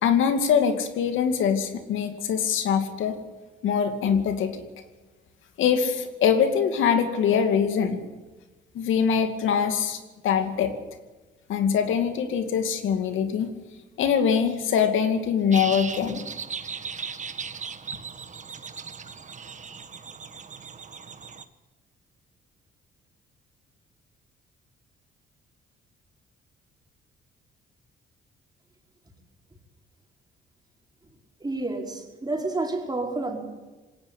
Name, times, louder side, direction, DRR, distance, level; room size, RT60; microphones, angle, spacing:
voice 1, 0.0-3.2 3.6-4.6 5.6-8.0 8.7-10.7 11.5-13.5 14.0-16.2, left 7 dB, 80° left, 7 dB, 2.4 m, -23 dB
sound 1, 15.5-21.4, right 5 dB, 35° right, 1.6 m, -37 dB
voice 2, 31.4-33.4, right 2 dB, 20° right, 1 dB, 5.2 m, -29 dB
21.0 x 17.5 x 9.9 m, 1.2 s
cardioid pair, 90°, 20 cm